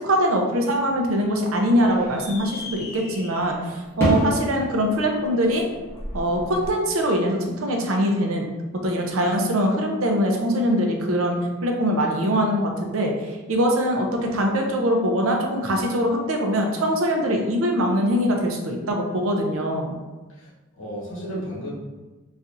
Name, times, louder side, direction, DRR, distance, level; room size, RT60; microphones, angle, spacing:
voice 1, 0.0-5.6 6.1-8.5 8.8-13.1 13.5-20.0, equal, 80° right, 1 dB, 0.6 m, -22 dB
sound 1, 0.7-6.7, left 1 dB, 15° left, 1.0 m, -31 dB
voice 2, 20.3-21.7, equal, 65° left, -6 dB, 1.3 m, -34 dB
4.2 x 2.4 x 2.5 m, 1.2 s
head